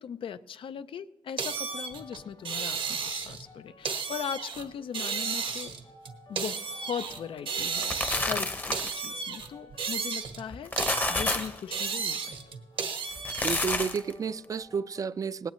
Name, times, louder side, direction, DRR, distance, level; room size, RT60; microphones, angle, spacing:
voice 1, 0.0-5.7 6.3-10.7 11.1-12.4, left 8 dB, 85° left, 13 dB, 0.5 m, -39 dB
sound 1, 1.4-3.5 3.8-4.6 4.9-7.2 7.5-8.4 8.7-10.5 10.8-13.6, right 5 dB, 90° right, 1.4 m, -33 dB
sound 2, 1.6-15.0, left 2 dB, 65° left, 3.3 m, -55 dB
sound 3, 7.6-9.1 10.5-11.6 13.1-14.1, left 2 dB, 20° left, 0.8 m, -30 dB
voice 2, 13.4-15.5, right 6 dB, 40° right, 16 dB, 0.4 m, -31 dB
19.0 x 17.5 x 3.1 m, 1.1 s
wide cardioid pair, 170°, 9 cm